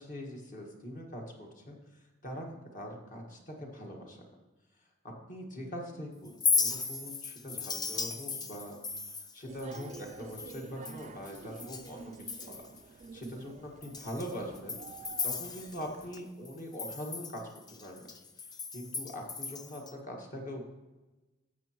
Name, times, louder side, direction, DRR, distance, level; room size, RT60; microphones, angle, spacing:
voice 1, 0.0-4.2 5.0-12.1 12.5-12.6 12.9-14.8 15.2-17.4 17.7-18.1 18.7-20.7, equal, 45° left, 0 dB, 1.6 m, -43 dB
Chink clink, 6.3-11.9 12.2-12.8 13.2-13.3 13.8-16.2 16.4-19.9, left 5 dB, 20° left, 0.5 m, -36 dB
sound 1, 9.5-16.2, right 4 dB, 35° right, 0.3 m, -49 dB
13.0 x 7.4 x 3.0 m, 1.1 s
head